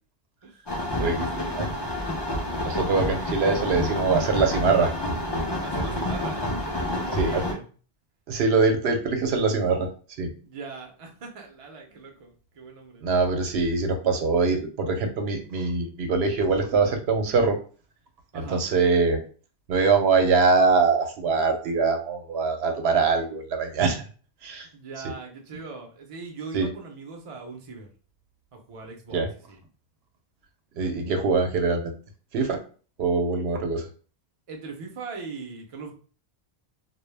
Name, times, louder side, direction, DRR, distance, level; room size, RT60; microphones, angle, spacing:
sound 1, 0.7-7.5, left 1 dB, 35° left, 0.4 m, -28 dB
voice 1, 1.0-1.7 5.6-7.7 10.4-13.0 18.3-18.6 24.7-27.9 28.5-29.6 34.5-35.9, right 4 dB, 40° right, 2 dB, 0.5 m, -40 dB
voice 2, 2.6-4.9 7.2-7.4 8.3-9.9 10.2-10.3 13.0-17.6 18.3-19.2 19.7-24.0 24.4-24.7 26.5-26.7 29.1-29.3 30.8-31.9 32.3-32.6 33.0-33.9, right 4 dB, 80° right, 4 dB, 0.8 m, -23 dB
2.1 x 2.0 x 3.2 m, 0.39 s
omnidirectional pair, 1.0 m